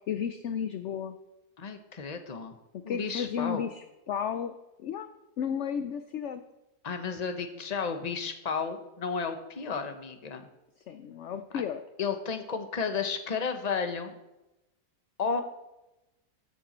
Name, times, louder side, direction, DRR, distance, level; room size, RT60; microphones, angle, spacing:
voice 1, 0.1-1.2 2.9-5.1 5.4-6.4 10.9-11.8, left 8 dB, 65° left, 10 dB, 0.8 m, -33 dB
voice 2, 1.6-2.6 2.8-3.6 6.8-10.5 11.5-11.6 12.0-14.1 15.2-15.4, left 5 dB, 30° left, 6 dB, 0.9 m, -32 dB
14.0 x 7.6 x 4.3 m, 0.96 s
omnidirectional pair, 1.7 m